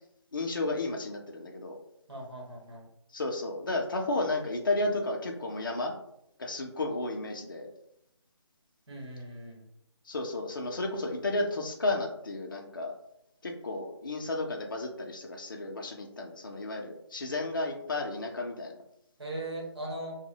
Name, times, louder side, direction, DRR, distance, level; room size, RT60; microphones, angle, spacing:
voice 1, 0.3-1.8 3.1-5.9 6.4-7.7 10.1-12.9 13.4-18.7, left 2 dB, 45° left, 2 dB, 0.4 m, -32 dB
voice 2, 2.1-2.9 8.9-9.7 19.2-20.2, right 1 dB, 60° right, -1 dB, 0.9 m, -39 dB
2.8 x 2.0 x 2.7 m, 0.78 s
figure-of-eight pair, 180°, 15 cm